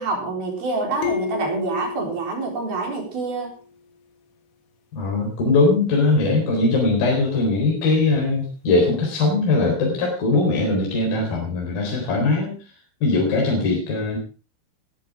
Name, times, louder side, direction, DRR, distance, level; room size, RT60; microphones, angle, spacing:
voice 1, 0.0-3.5, right 3 dB, 50° right, 1 dB, 5.8 m, -26 dB
sound 1, 1.0-3.6, left 6 dB, 90° left, 5.5 m, -32 dB
voice 2, 4.9-12.5 13.0-14.2, left 3 dB, 50° left, -1 dB, 5.6 m, -20 dB
18.5 x 13.5 x 3.7 m, 0.37 s
omnidirectional pair, 5.7 m